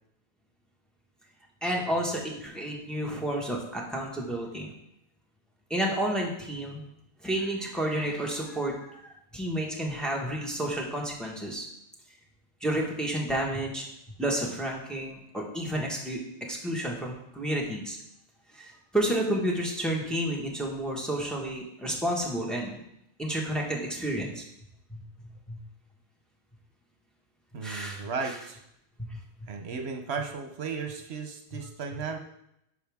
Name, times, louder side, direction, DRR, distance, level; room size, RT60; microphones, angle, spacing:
voice 1, 1.6-4.7 5.7-6.8 7.2-11.6 12.6-13.8 14.2-16.2 16.5-18.0 18.5-22.8 23.2-24.4 24.9-25.0 25.5-25.6 27.6-28.3 29.0-29.5, right 1 dB, ahead, -2 dB, 1.3 m, -31 dB
voice 2, 27.5-28.6 29.5-32.2, right 5 dB, 75° right, 4 dB, 1.0 m, -35 dB
11.0 x 4.9 x 3.5 m, 0.79 s
omnidirectional pair, 1.1 m